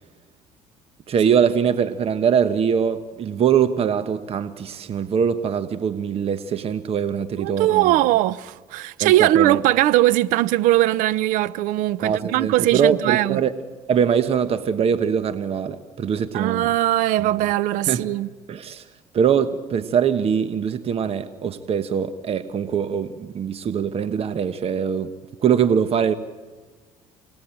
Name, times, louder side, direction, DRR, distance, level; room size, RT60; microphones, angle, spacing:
voice 1, 1.1-7.9 9.0-9.6 12.0-13.5 13.9-16.7 17.2-17.3 17.9-18.1 18.5-18.9 19.1-25.1 25.4-26.1, right 7 dB, 45° right, 1.1 m, -22 dB
voice 2, 7.4-13.4 16.3-18.3, right 15 dB, 75° right, 0.7 m, -20 dB
28.5 x 18.0 x 9.0 m
supercardioid pair, 80°, 14 cm